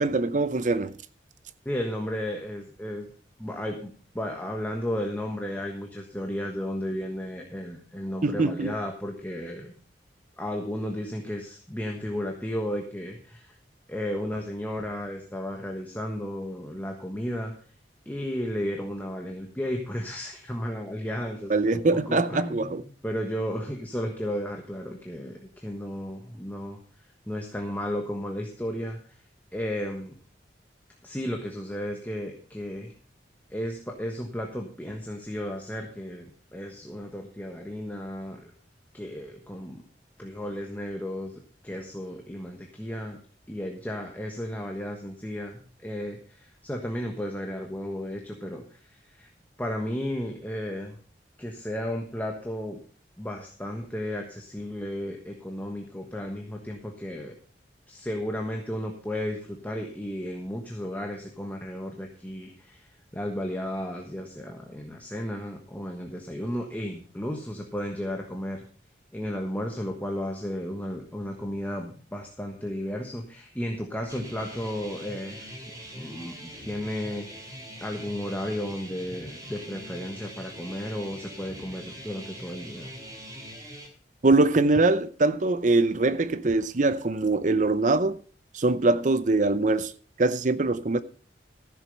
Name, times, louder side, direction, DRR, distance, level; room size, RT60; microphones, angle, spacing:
voice 1, 0.0-1.0 8.2-8.7 21.5-22.8 84.2-88.2 88.5-89.9 90.2-91.0, right 2 dB, 45° right, 0.6 m, -23 dB
voice 2, 1.6-3.1 3.4-9.7 10.4-13.6 13.9-17.5 18.0-26.8 27.3-29.2 29.5-30.1 31.0-32.9 33.5-38.5 38.9-39.8 40.2-41.3 41.6-43.2 43.5-49.3 49.6-51.0 51.4-52.8 53.2-57.3 57.9-68.6 69.1-75.5 75.9-77.3 77.8-82.9, equal, 10° left, 1.3 m, -34 dB
sound 1, 74.1-83.9, equal, 20° right, 3.0 m, -42 dB
14.0 x 7.5 x 5.4 m
head